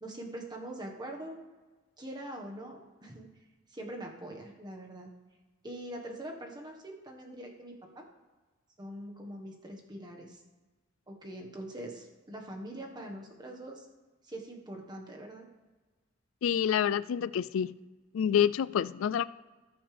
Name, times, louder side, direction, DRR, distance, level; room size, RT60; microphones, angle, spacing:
voice 1, 0.0-1.4 2.0-3.3 3.7-5.1 5.6-8.0 8.8-10.4 11.1-13.9 14.2-15.5, right 1 dB, 20° right, 1.4 m, -43 dB
voice 2, 16.4-17.7 18.1-19.2, left 8 dB, 70° left, 0.3 m, -27 dB
18.5 x 7.1 x 3.4 m
head